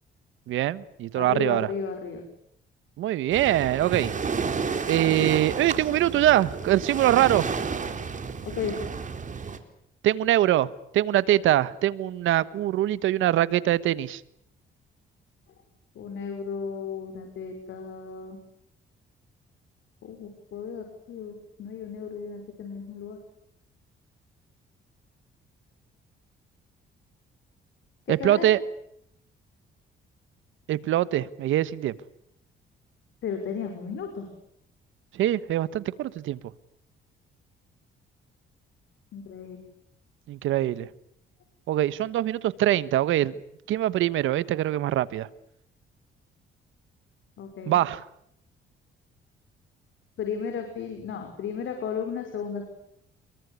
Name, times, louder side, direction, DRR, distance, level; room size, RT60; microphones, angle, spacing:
voice 1, 0.5-1.7 3.0-4.1 4.9-7.4 10.0-14.2 28.1-28.6 30.7-31.9 35.1-36.4 40.3-40.9 41.7-43.3 43.7-45.3 47.7-48.0, right 13 dB, 85° right, 16 dB, 1.3 m, -23 dB
voice 2, 1.1-2.2 8.4-8.7 15.9-18.4 20.0-23.2 28.1-28.5 33.2-34.3 39.1-39.6 47.4-47.8 50.2-52.7, left 6 dB, 75° left, 5 dB, 5.9 m, -34 dB
Waves surf, 3.3-9.6, right 5 dB, 40° right, 4.0 m, -31 dB
28.0 x 23.0 x 8.4 m, 0.75 s
cardioid pair, 90°, 20 cm